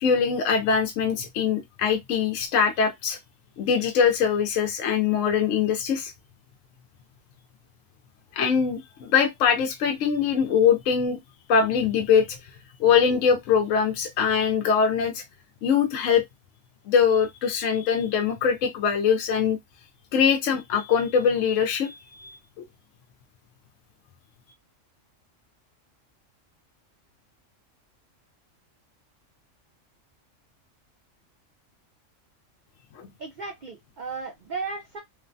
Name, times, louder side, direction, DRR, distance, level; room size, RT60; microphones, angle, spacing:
voice 1, 0.0-3.2 3.6-6.1 8.3-11.2 11.5-12.4 12.8-15.2 15.6-16.2 16.9-19.6 20.1-22.4 33.0-33.1, left 7 dB, 75° left, 0.9 m, -22 dB
voice 2, 33.2-35.0, right 4 dB, 70° right, 0.4 m, -35 dB
3.0 x 2.1 x 2.5 m
omnidirectional pair, 1.3 m